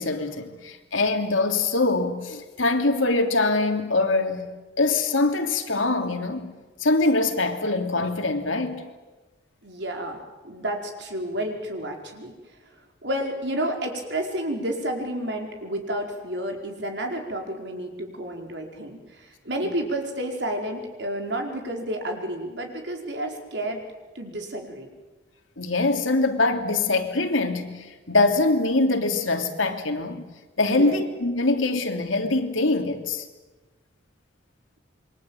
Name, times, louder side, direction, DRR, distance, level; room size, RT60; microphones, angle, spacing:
voice 1, 0.0-4.5 4.8-6.5 6.8-8.9 19.6-19.7 25.6-30.2 30.6-33.2, left 2 dB, 90° left, 3.1 m, -23 dB
voice 2, 9.6-12.3 13.0-23.8 24.1-24.9 30.6-31.0, right 1 dB, 60° right, 4.9 m, -30 dB
27.5 x 23.5 x 9.1 m
head